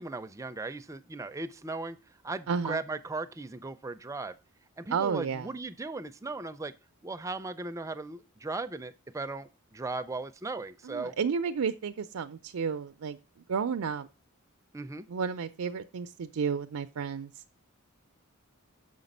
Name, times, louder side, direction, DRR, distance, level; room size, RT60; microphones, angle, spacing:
voice 1, 0.0-2.0 2.2-4.4 4.8-6.7 7.0-11.1 14.7-15.1, right 3 dB, 15° right, 0.4 m, -37 dB
voice 2, 2.5-2.8 4.9-5.5 10.8-13.2 13.5-14.1 15.1-17.3, right 6 dB, 75° right, 0.5 m, -32 dB
6.5 x 5.1 x 5.3 m
head